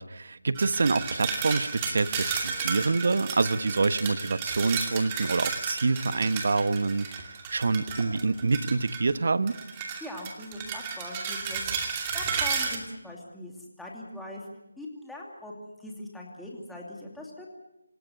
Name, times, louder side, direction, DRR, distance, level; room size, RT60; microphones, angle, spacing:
voice 1, 0.0-9.6, right 3 dB, 50° right, 13 dB, 1.1 m, -26 dB
sound 1, 0.6-9.1 9.5-12.8, right 6 dB, 15° right, 2.5 m, -33 dB
voice 2, 10.0-14.5 14.8-17.5, left 1 dB, ahead, -3 dB, 2.7 m, -41 dB
27.0 x 16.5 x 8.1 m, 0.91 s
figure-of-eight pair, 170°, 0 cm